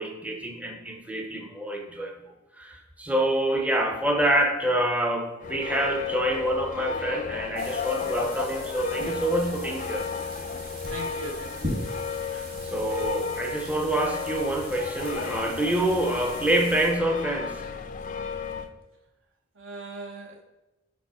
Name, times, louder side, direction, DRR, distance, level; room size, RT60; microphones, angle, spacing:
voice 1, 0.0-2.2 2.6-10.1 12.3-17.6, right 1 dB, 5° right, 2 dB, 0.5 m, -27 dB
sound 1, 5.4-18.7, left 6 dB, 45° left, 0.4 m, -34 dB
sound 2, 7.6-16.9, equal, 55° right, 2.2 m, -40 dB
voice 2, 10.9-11.5 19.6-20.4, right 2 dB, 75° right, 3 dB, 0.9 m, -38 dB
6.1 x 4.5 x 4.2 m, 1.0 s
head